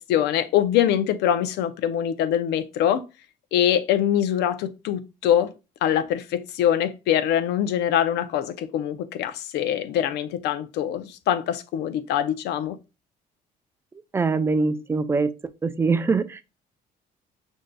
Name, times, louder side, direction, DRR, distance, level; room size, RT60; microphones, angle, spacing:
voice 1, 0.0-3.0 3.5-5.5 5.8-12.8, left 10 dB, 80° left, 0.5 m, -23 dB
voice 2, 14.1-15.3 15.6-16.4, right 4 dB, 15° right, 0.3 m, -23 dB
6.2 x 2.6 x 2.2 m
cardioid pair, 110°, 17 cm